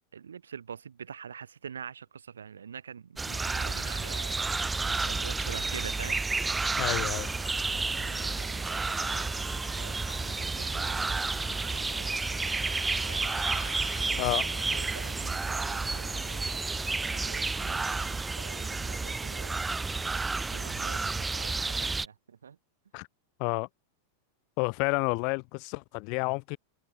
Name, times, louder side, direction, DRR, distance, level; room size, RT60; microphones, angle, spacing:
voice 1, 0.1-4.4 4.8-6.2 7.7-9.5 9.8-12.1 13.1-13.3 14.0-19.7 20.3-22.6, right 7 dB, 70° right, 5.8 m, -46 dB
sound 1, 3.2-22.1, right 3 dB, 10° right, 0.6 m, -31 dB
sound 2, 3.4-17.4, left 9 dB, 65° left, 7.3 m, -50 dB
voice 2, 6.8-7.3 14.2-14.5 22.9-23.1 23.4-23.7 24.6-26.6, left 34 dB, 45° left, 2.8 m, -30 dB
figure-of-eight pair, 90°, 0 cm